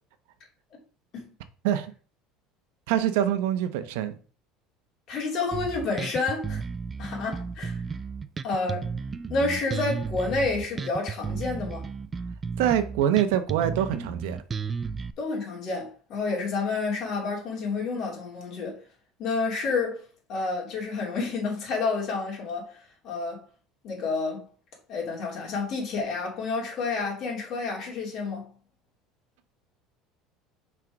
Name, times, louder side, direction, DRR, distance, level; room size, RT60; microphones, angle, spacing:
voice 1, 2.9-4.2 12.6-14.4, right 10 dB, 85° right, 0.9 m, -25 dB
voice 2, 5.1-6.6 7.0-7.8 8.4-8.9 9.3-11.8 15.2-18.8 19.2-20.0 20.3-22.8 23.0-23.4 23.8-24.4 24.9-28.5, left 4 dB, 45° left, 3.2 m, -29 dB
Bass guitar, 5.5-15.1, right 5 dB, 20° right, 0.3 m, -33 dB
6.0 x 4.5 x 5.0 m
cardioid pair, 155°, 0 cm